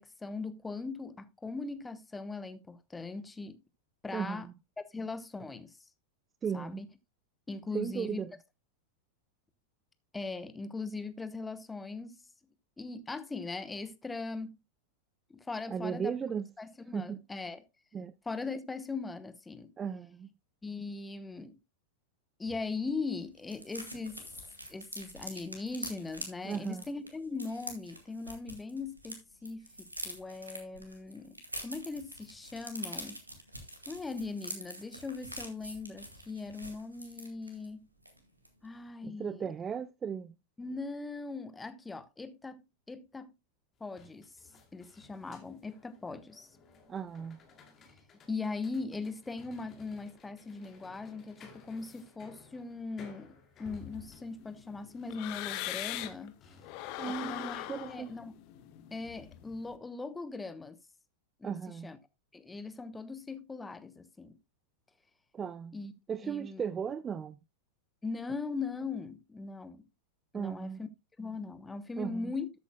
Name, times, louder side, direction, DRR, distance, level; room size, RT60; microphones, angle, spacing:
voice 1, 0.0-3.6 4.0-4.5 4.9-5.8 6.5-6.9 7.5-8.2 10.1-12.2 12.8-14.6 15.3-16.1 16.6-17.6 18.3-19.7 20.6-21.6 22.4-24.2 24.7-33.2 33.9-37.9 38.6-39.5 40.6-43.3 43.8-44.3 44.7-46.5 48.3-56.4 57.0-58.3 58.9-60.8 61.4-62.0 62.3-64.4 65.7-65.9 66.2-66.6 68.0-69.8 70.3-70.9 71.2-72.5, left 3 dB, 10° left, 0.9 m, -40 dB
voice 2, 4.1-4.5 6.4-6.8 7.7-8.3 15.7-16.4 16.9-17.2 17.9-18.1 19.8-20.3 26.4-26.8 39.0-40.3 46.9-47.4 57.0-58.1 61.4-61.9 65.3-65.8 66.1-67.4 70.3-70.8 72.0-72.3, right 7 dB, 20° right, 0.4 m, -36 dB
sound 1, 22.5-22.6 22.8-22.9 23.2-29.1 29.4-37.7 38.0-38.2 38.4-38.7, right 1 dB, 85° right, 2.0 m, -45 dB
sound 2, 43.8-57.0, left 4 dB, 30° left, 2.5 m, -57 dB
sound 3, 53.7-56.3 56.6-59.7, left 15 dB, 45° left, 1.0 m, -41 dB
13.0 x 8.2 x 2.2 m
figure-of-eight pair, 90°, 0 cm